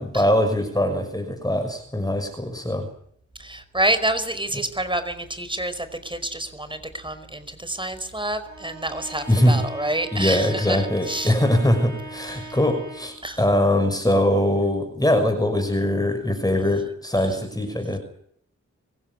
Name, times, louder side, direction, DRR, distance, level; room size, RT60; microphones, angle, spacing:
voice 1, 0.0-2.9 9.3-9.6 10.1-18.0, left 1 dB, 15° left, 6 dB, 6.2 m, -22 dB
voice 2, 3.4-11.4 12.4-12.6 13.2-13.4, right 1 dB, 15° right, 11 dB, 5.0 m, -28 dB
Bowed string instrument, 8.4-13.3, right 2 dB, 75° right, 6.6 m, -40 dB
25.0 x 16.0 x 9.8 m, 0.65 s
cardioid pair, 70°, 29 cm